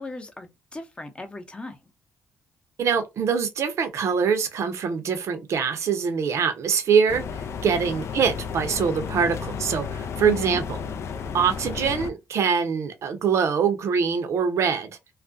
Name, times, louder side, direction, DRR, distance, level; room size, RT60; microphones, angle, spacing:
voice 1, 0.0-1.8 10.3-10.6, left 2 dB, 20° left, 0.7 m, -37 dB
voice 2, 2.8-7.2 7.6-10.8 11.3-15.0, right 6 dB, 60° right, 0.6 m, -24 dB
sound 1, 7.1-12.1, left 6 dB, 55° left, 0.3 m, -33 dB
2.4 x 2.1 x 2.5 m
cardioid pair, 75°, 5 cm